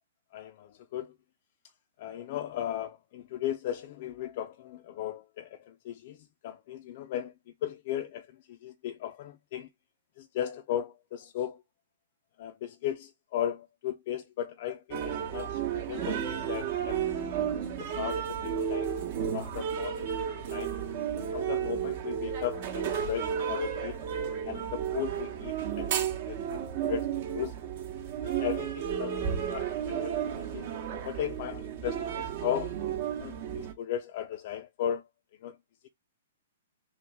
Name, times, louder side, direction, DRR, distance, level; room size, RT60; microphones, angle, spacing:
voice 1, 0.3-1.1 2.0-7.3 7.6-9.7 10.2-11.6 12.4-17.5 17.8-18.9 19.3-20.1 20.5-20.7 21.3-24.0 24.4-26.0 26.3-27.1 27.3-27.5 28.2-29.2 29.5-30.7 31.0-32.8 33.2-35.0 35.4-35.6, left 10 dB, 50° left, 0.3 m, -36 dB
sound 1, 14.9-33.7, right 8 dB, 50° right, 0.8 m, -33 dB
3.0 x 2.5 x 3.3 m
hypercardioid pair, 135°, 0 cm